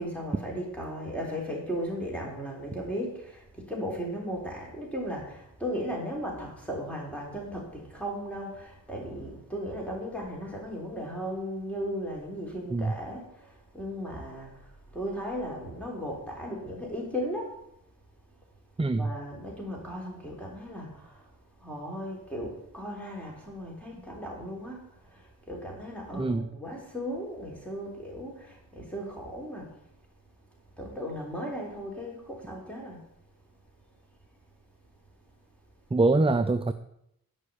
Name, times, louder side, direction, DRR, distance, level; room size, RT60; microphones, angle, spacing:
voice 1, 0.0-17.5 19.0-21.3 21.6-29.7 30.8-33.0, equal, 5° left, -2 dB, 3.7 m, -36 dB
voice 2, 18.8-19.1 26.1-26.5 35.9-36.7, right 3 dB, 15° right, 10 dB, 0.4 m, -24 dB
11.5 x 5.6 x 8.5 m, 0.77 s
wide cardioid pair, 145°, 35 cm